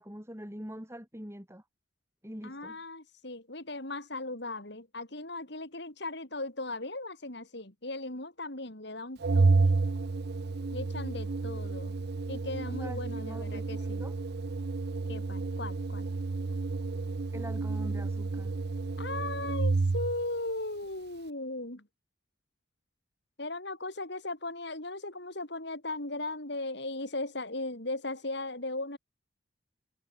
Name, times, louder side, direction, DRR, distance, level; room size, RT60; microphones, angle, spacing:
voice 1, 0.0-1.6 2.2-2.8 12.8-14.1 17.3-18.5, equal, 15° right, 6.2 m, -44 dB
voice 2, 2.4-9.7 10.7-11.9 12.3-14.1 15.1-16.1 19.0-21.9 23.4-29.0, left 2 dB, 60° left, 4.6 m, -37 dB
Organ, 9.2-20.2, right 3 dB, 55° right, 0.5 m, -30 dB
head